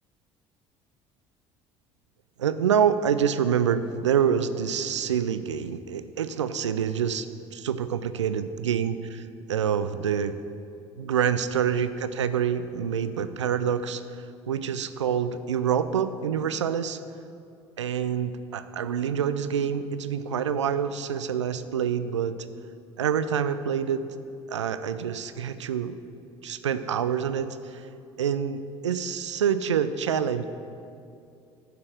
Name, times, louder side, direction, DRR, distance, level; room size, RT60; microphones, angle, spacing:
voice 1, 2.4-7.3 7.5-10.4 11.0-14.0 14.5-17.0 17.8-22.4 23.0-24.1 24.5-26.0 26.4-27.9 28.2-30.4, right 8 dB, 85° right, 12 dB, 0.4 m, -26 dB
10.0 x 5.7 x 6.4 m, 2.5 s
figure-of-eight pair, 60°, 15 cm